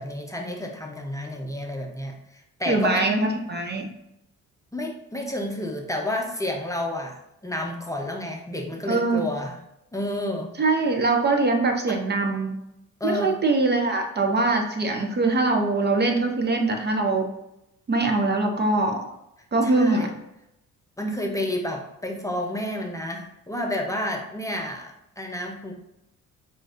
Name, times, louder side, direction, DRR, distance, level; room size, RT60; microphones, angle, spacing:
voice 1, 0.0-3.1 4.7-9.6 9.9-10.5 11.9-12.0 13.0-13.3 19.6-20.1 21.0-25.7, left 1 dB, 10° left, 1 dB, 0.6 m, -30 dB
voice 2, 2.7-3.9 8.9-9.3 10.6-12.5 13.0-17.3 17.9-19.0 19.5-20.1, right 3 dB, 35° right, 4 dB, 0.6 m, -22 dB
5.8 x 2.5 x 2.5 m, 0.84 s
cardioid pair, 90°, 30 cm